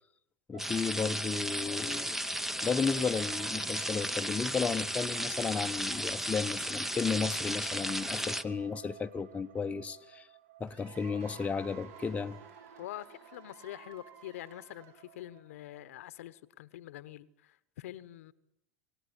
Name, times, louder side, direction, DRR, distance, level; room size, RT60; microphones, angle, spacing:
voice 1, 0.5-2.2 2.6-10.3 10.6-12.4, left 5 dB, 15° left, 1.0 m, -33 dB
sound 1, 0.5-16.1, right 11 dB, 85° right, 1.4 m, -54 dB
sound 2, 0.6-8.4, equal, 5° right, 0.9 m, -34 dB
Cheering / Applause / Crowd, 10.7-15.4, right 6 dB, 55° right, 3.8 m, -56 dB
voice 2, 12.8-18.3, left 14 dB, 80° left, 1.1 m, -45 dB
27.0 x 17.0 x 9.9 m
hypercardioid pair, 110°, 8 cm